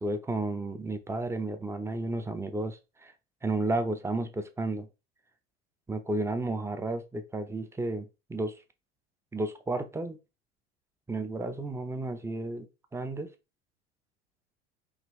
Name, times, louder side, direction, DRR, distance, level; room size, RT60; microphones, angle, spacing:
voice 1, 0.0-3.1 3.4-4.9 5.9-8.6 9.3-10.2 11.1-12.7 12.9-13.3, right 2 dB, 10° right, 0.7 m, -32 dB
4.9 x 3.0 x 3.1 m
figure-of-eight pair, 70°, 34 cm